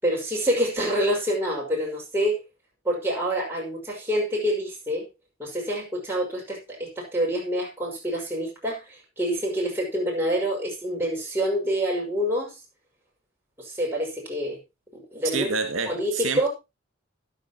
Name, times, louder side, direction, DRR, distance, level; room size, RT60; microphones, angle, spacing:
voice 1, 0.0-2.4 2.8-5.1 5.4-12.6 13.6-14.6 14.9-15.5 15.9-16.5, equal, 10° right, 5.9 m, -27 dB
voice 2, 15.2-16.5, right 4 dB, 75° right, 2.4 m, -28 dB
13.5 x 11.0 x 3.0 m
head